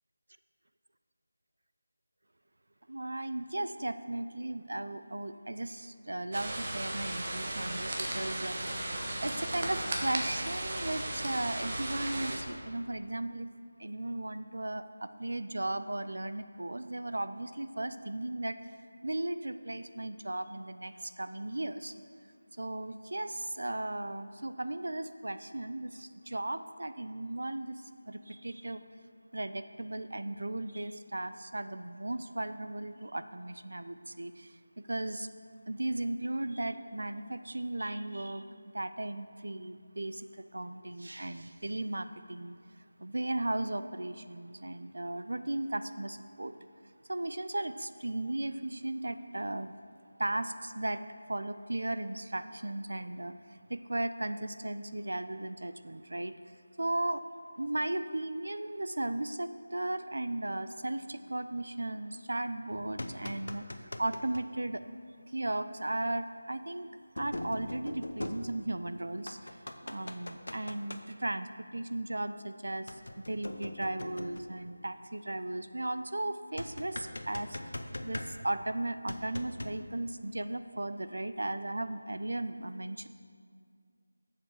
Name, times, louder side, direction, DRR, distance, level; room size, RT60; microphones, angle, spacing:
voice 1, 2.9-8.5 9.2-13.5 13.8-18.6 19.0-21.9 22.6-27.8 28.1-28.8 29.3-34.5 34.8-35.3 35.7-38.4 38.7-42.6 43.0-46.5 47.1-49.7 50.2-51.0 51.3-53.3 53.7-56.3 56.8-57.2 57.6-63.6 64.0-64.8 65.3-66.9 67.2-69.4 69.8-71.5 71.7-72.9 73.2-77.6 78.0-83.1, right 1 dB, 70° right, 11 dB, 0.5 m, -36 dB
sound 1, 6.3-12.4, right 1 dB, 40° right, 1.3 m, -35 dB
sound 2, 62.7-64.5 65.9-66.0 67.2-68.9 69.3-71.0 72.9-74.6 76.6-78.7 79.1-79.8, left 1 dB, 70° left, 0.7 m, -41 dB
7.3 x 6.1 x 6.5 m, 2.1 s
figure-of-eight pair, 170°, 0 cm